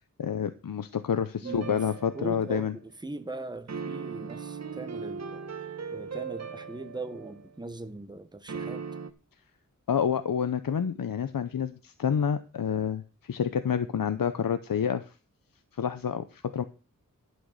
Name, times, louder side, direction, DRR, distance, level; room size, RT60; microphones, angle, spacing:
voice 1, 0.2-2.8 9.9-15.1 15.7-16.6, left 7 dB, 85° left, 0.7 m, -28 dB
voice 2, 1.4-1.9 2.1-5.4 5.9-8.9, right 2 dB, 15° right, 1.0 m, -40 dB
sound 1, 1.4-2.8 3.7-7.6 8.5-9.1, right 5 dB, 50° right, 1.1 m, -38 dB
11.5 x 6.3 x 6.4 m
wide cardioid pair, 85°, 33 cm